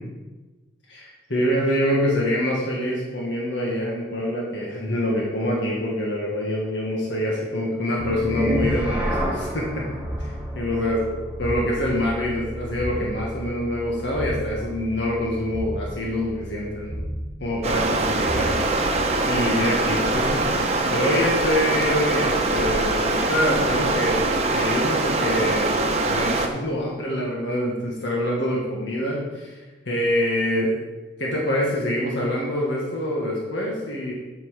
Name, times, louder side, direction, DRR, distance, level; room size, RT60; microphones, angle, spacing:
voice 1, 0.9-9.9 10.2-11.0 11.4-17.0 17.4-18.6 19.3-20.5 20.9-29.5 29.9-30.7 31.2-34.1, left 1 dB, 80° left, -3 dB, 1.9 m, -25 dB
sound 1, 8.0-19.1, equal, 10° right, 3.2 m, -31 dB
Stream, 17.6-26.5, right 2 dB, 35° right, 0.9 m, -23 dB
8.3 x 6.0 x 5.8 m, 1.2 s
head